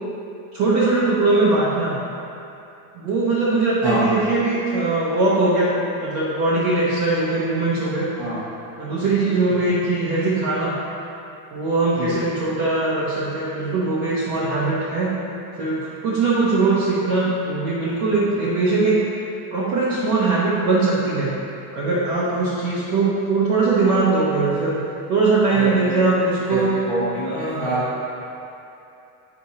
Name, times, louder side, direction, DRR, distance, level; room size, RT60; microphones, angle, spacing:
voice 1, 0.5-1.9 2.9-8.1 8.8-10.8 11.5-15.2 15.6-19.0 19.5-21.3 21.7-24.8 25.1-26.8 27.2-27.7, right 3 dB, 25° right, -8 dB, 0.6 m, -21 dB
voice 2, 25.5-26.0 26.5-27.8 28.2-28.3, right 1 dB, 5° left, -12 dB, 1.5 m, -26 dB
9.2 x 4.8 x 2.7 m, 2.8 s
supercardioid pair, 170°, 49 cm